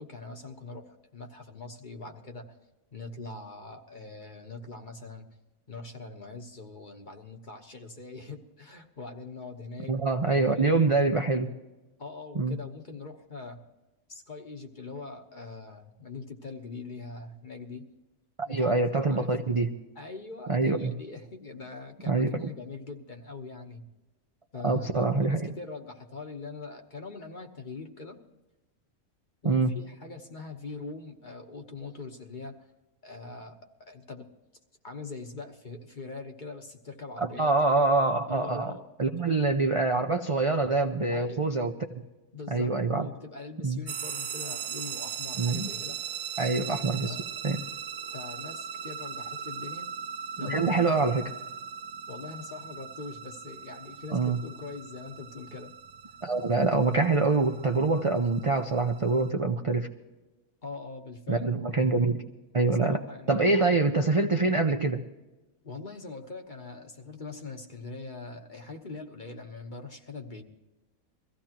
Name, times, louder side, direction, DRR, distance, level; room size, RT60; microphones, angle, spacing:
voice 1, 0.0-2.5 2.9-5.3 5.7-10.0 10.2-11.4 12.0-13.6 14.1-17.8 18.4-18.8 19.1-19.3 19.9-23.9 24.5-28.2 29.4-32.6 33.0-34.3 34.8-37.5 38.3-38.9 39.3-39.4 41.1-41.5 42.3-46.0 46.7-47.2 48.1-49.9 50.4-51.3 52.1-55.7 60.6-61.9 62.8-63.8 65.6-70.4, left 3 dB, 35° left, 4 dB, 1.2 m, -42 dB
voice 2, 9.9-11.5 12.3-12.6 18.5-19.7 20.5-20.9 22.1-22.5 24.6-25.4 29.4-29.7 37.4-38.7 39.0-41.7 42.5-43.1 43.6-43.8 45.4-45.7 46.4-47.2 47.4-47.6 50.4-51.3 54.1-54.4 56.2-59.9 61.3-62.3 62.5-63.0 63.3-65.0, right 3 dB, 40° right, 5 dB, 0.5 m, -25 dB
sound 1, 43.9-59.3, right 8 dB, 85° right, 1.2 m, -39 dB
23.0 x 15.5 x 3.0 m, 1.1 s
omnidirectional pair, 1.5 m